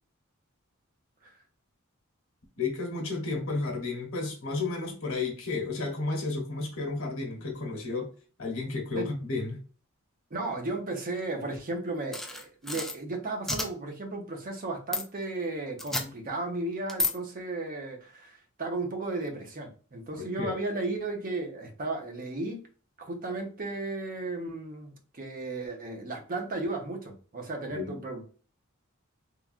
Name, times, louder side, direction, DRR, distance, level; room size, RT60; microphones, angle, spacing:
voice 1, 2.6-8.1 8.4-9.6 20.2-20.5 27.7-27.9, left 3 dB, 70° left, 0.9 m, -32 dB
voice 2, 10.3-22.6 23.0-28.2, right 2 dB, 45° right, 0.7 m, -34 dB
sound 1, 12.1-12.9 13.5-13.7 14.9-15.0 15.8-16.0 16.9-17.1, left 2 dB, ahead, 0.3 m, -30 dB
3.2 x 2.3 x 2.4 m
head